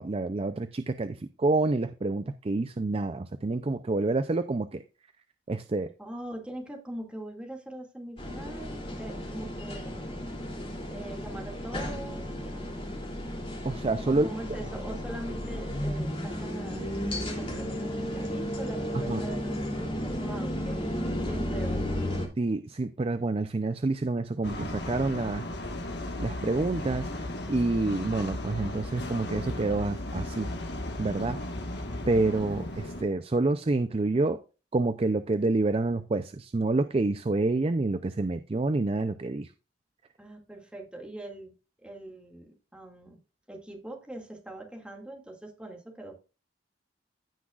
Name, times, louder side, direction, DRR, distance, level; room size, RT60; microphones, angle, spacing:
voice 1, 0.0-4.8 5.5-5.9 13.6-14.3 19.1-19.2 22.4-25.4 26.2-27.1 27.5-30.5 31.0-31.4 32.1-34.4 34.7-39.5, right 2 dB, 30° right, 10 dB, 0.5 m, -28 dB
voice 2, 6.0-10.0 10.9-12.8 14.1-16.8 17.3-20.8 21.3-21.9 40.2-41.5 41.8-43.2 43.5-46.2, right 1 dB, 5° right, 0 dB, 2.2 m, -42 dB
sound 1, 8.2-22.3, equal, 30° left, 2.9 m, -33 dB
sound 2, 24.4-33.0, left 1 dB, 65° left, 1.5 m, -35 dB
15.5 x 6.1 x 2.4 m, 0.33 s
head